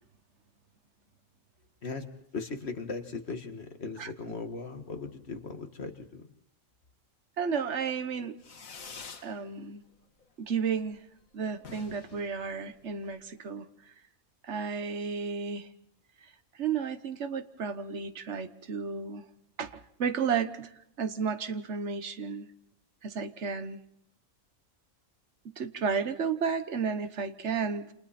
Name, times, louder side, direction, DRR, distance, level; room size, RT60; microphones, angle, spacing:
voice 1, 2.3-6.3, left 4 dB, 50° left, 5 dB, 2.1 m, -38 dB
voice 2, 7.4-8.4 9.2-9.8 10.4-11.0 11.3-13.7 14.4-15.7 16.6-19.2 19.6-20.7 21.0-22.5 23.0-23.8 25.4-27.9, right 6 dB, 60° right, 10 dB, 1.4 m, -32 dB
Fireworks, 8.4-9.3 9.7-10.2 10.5-10.6 10.8-11.0 11.2-11.3 11.5-13.2, left 5 dB, 90° left, 1.9 m, -47 dB
29.0 x 27.0 x 4.3 m, 0.74 s
omnidirectional pair, 1.4 m